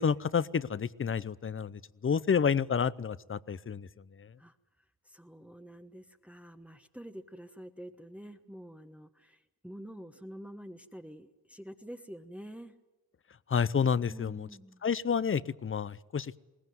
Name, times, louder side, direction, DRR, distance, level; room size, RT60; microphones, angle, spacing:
voice 1, 0.0-4.3 13.5-14.5 14.8-16.3, left 6 dB, 35° left, 18 dB, 0.7 m, -30 dB
voice 2, 5.1-12.7 14.1-14.8, equal, 5° right, 7 dB, 1.1 m, -47 dB
21.5 x 19.0 x 9.4 m, 1.1 s
cardioid pair, 90°, 35 cm